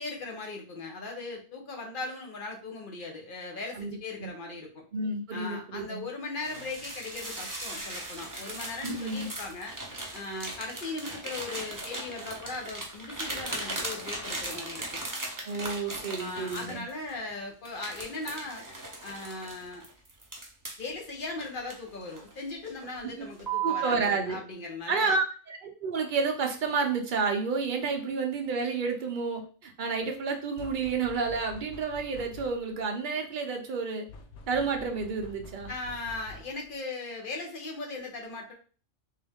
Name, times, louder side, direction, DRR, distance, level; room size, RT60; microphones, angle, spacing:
voice 1, 0.0-4.8 5.3-9.8 10.1-15.0 16.2-18.6 19.0-19.9 20.8-25.1 35.7-38.5, left 3 dB, 45° left, 1 dB, 1.0 m, -38 dB
voice 2, 3.7-4.3 4.9-6.1 8.8-9.3 15.4-16.8 23.2-23.3 23.6-24.4 24.9-34.1 34.5-35.7, right 4 dB, 45° right, 3 dB, 0.8 m, -30 dB
sound 1, 6.4-17.2 17.6-20.9 21.4-22.3 22.7-22.9 23.4-24.0, right 3 dB, 20° right, 0.7 m, -38 dB
sound 2, 30.6-32.8 34.1-36.7, left 3 dB, 70° left, 0.9 m, -47 dB
3.7 x 2.7 x 3.5 m, 0.39 s
omnidirectional pair, 1.3 m